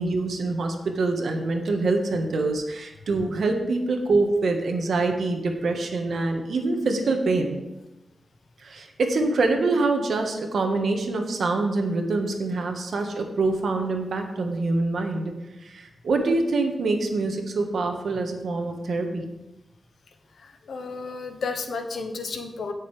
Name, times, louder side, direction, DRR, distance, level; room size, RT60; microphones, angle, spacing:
voice 1, 0.0-7.6 8.6-15.3 15.6-19.2, right 3 dB, 80° right, 4 dB, 1.5 m, -25 dB
voice 2, 20.4-22.7, left 4 dB, 80° left, 5 dB, 1.1 m, -32 dB
17.0 x 6.6 x 3.4 m, 0.97 s
wide cardioid pair, 100°, 0 cm